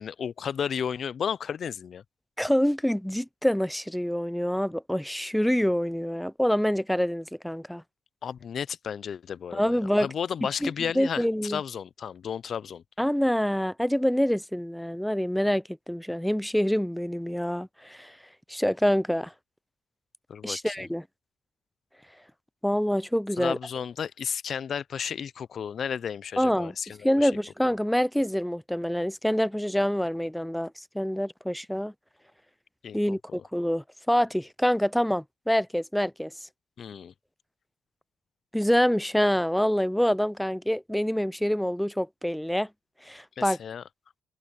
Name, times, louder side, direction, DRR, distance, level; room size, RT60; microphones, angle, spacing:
voice 1, 0.0-2.0 8.2-12.8 20.3-20.9 23.4-27.3 32.8-33.4 36.8-37.1 43.4-43.8, left 7 dB, 60° left, 0.5 m, -33 dB
voice 2, 2.4-7.8 9.5-10.1 10.6-11.6 13.0-18.2 18.5-19.3 20.4-21.0 22.6-23.6 26.4-26.7 27.0-31.9 32.9-36.5 38.5-42.7 43.0-43.6, equal, 5° left, 0.6 m, -26 dB
cardioid pair, 75°, 0 cm